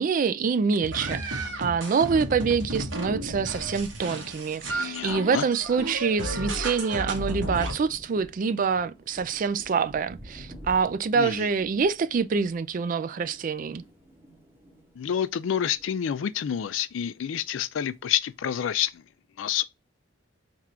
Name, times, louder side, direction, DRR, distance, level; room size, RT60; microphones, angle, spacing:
voice 1, 0.0-13.8, right 5 dB, 45° right, 0.3 m, -26 dB
sound 1, 0.8-7.7, right 1 dB, 65° right, 1.1 m, -33 dB
voice 2, 4.7-5.5 11.1-11.5 15.0-19.0 19.4-19.6, left 9 dB, 85° left, 0.4 m, -28 dB
Thunder, 6.7-16.5 16.8-17.9, equal, 10° right, 1.1 m, -49 dB
3.6 x 2.5 x 4.2 m
head